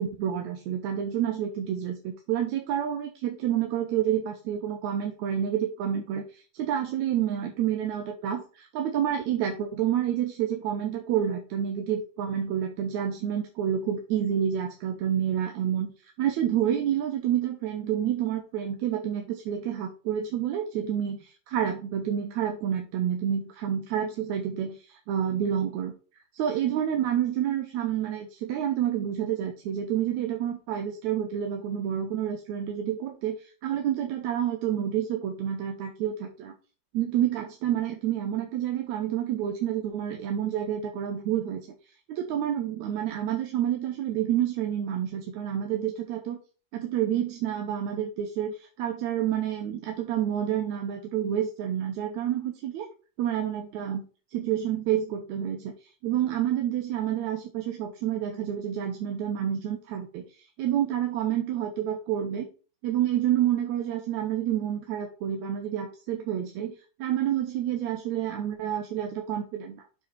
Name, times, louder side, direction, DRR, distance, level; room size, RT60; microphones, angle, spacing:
voice 1, 0.0-25.9 26.3-36.5 36.9-41.6 42.1-46.4 46.7-52.9 53.2-54.0 54.3-62.5 62.8-69.8, right 10 dB, 75° right, 4 dB, 2.1 m, -29 dB
6.9 x 5.0 x 4.5 m, 0.36 s
omnidirectional pair, 3.4 m